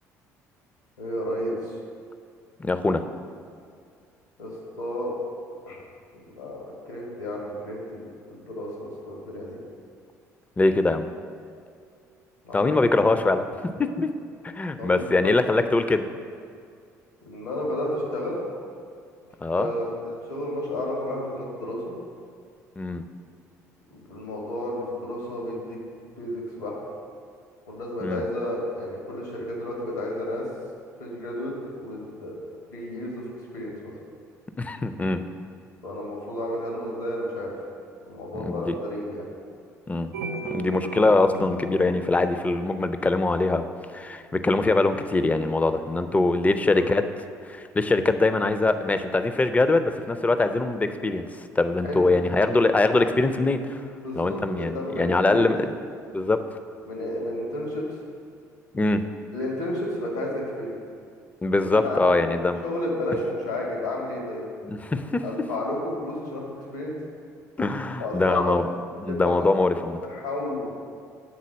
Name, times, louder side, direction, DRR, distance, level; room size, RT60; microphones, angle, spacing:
voice 1, 1.0-1.6 4.4-4.5 4.8-5.1 5.6-5.8 6.3-9.6 12.4-13.2 14.7-15.7 17.2-18.4 19.5-21.9 24.1-25.8 26.2-26.8 27.7-30.5 31.0-32.3 32.7-33.2 33.5-33.9 35.8-37.5 38.1-39.2 46.7-46.8 51.8-52.1 53.9-55.5 56.9-57.8 59.3-60.8 61.7-62.3 62.6-64.4 65.2-67.0 68.0-68.6 69.1-69.5 70.1-70.7, left 1 dB, 85° left, -2 dB, 1.6 m, -32 dB
voice 2, 2.6-3.0 10.6-11.1 12.5-14.1 14.4-16.1 19.4-19.7 22.8-23.0 28.0-28.2 34.6-35.2 38.3-38.7 39.9-40.1 40.5-43.7 43.9-47.0 47.4-51.3 51.6-53.8 54.1-55.7 56.1-56.4 58.7-59.0 61.4-62.6 64.6-65.2 67.6-68.7 69.0-70.0, left 2 dB, 15° left, 9 dB, 0.4 m, -23 dB
sound 1, 40.1-43.3, right 4 dB, 80° right, 0.5 m, -36 dB
7.3 x 3.9 x 6.2 m, 2.3 s
figure-of-eight pair, 50°, 9 cm